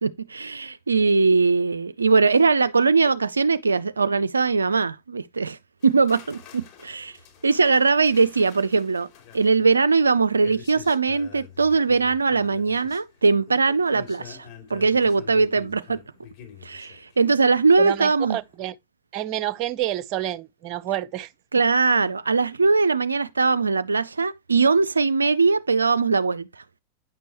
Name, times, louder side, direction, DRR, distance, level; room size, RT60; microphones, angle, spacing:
voice 1, 0.0-7.2 7.4-9.1 9.3-16.0 16.6-18.4 21.5-26.6, right 4 dB, 75° right, 0.4 m, -21 dB
sound 1, 5.8-17.9 18.2-18.5, left 8 dB, 45° left, 3.3 m, -47 dB
voice 2, 17.8-18.8 19.1-21.3, right 13 dB, 40° right, 0.7 m, -28 dB
9.6 x 6.6 x 3.0 m
figure-of-eight pair, 90°, 0 cm